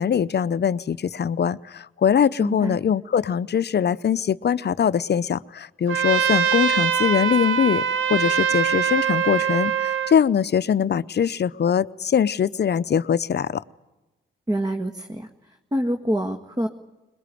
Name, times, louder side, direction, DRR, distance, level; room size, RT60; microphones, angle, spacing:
voice 1, 0.0-13.6, left 8 dB, 55° left, 17 dB, 0.7 m, -22 dB
voice 2, 2.4-2.8 14.5-15.3 15.7-16.7, equal, 20° right, 5 dB, 1.8 m, -26 dB
Trumpet, 5.9-10.2, right 7 dB, 75° right, 1.1 m, -22 dB
22.0 x 21.5 x 9.3 m, 1.1 s
cardioid pair, 60°, 21 cm